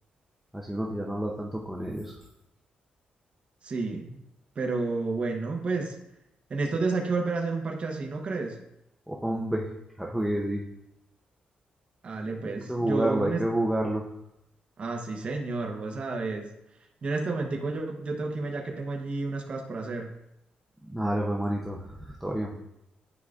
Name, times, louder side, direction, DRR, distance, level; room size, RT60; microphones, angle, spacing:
voice 1, 0.5-2.1 9.1-9.7 10.0-10.6 12.7-14.0 20.8-22.6, right 1 dB, 5° right, -2 dB, 0.6 m, -29 dB
voice 2, 3.6-4.2 4.6-6.0 6.5-8.6 12.0-13.4 14.8-16.5 17.0-20.1, right 3 dB, 40° right, 2 dB, 0.8 m, -30 dB
9.8 x 4.8 x 2.4 m, 0.84 s
wide cardioid pair, 140°, 3 cm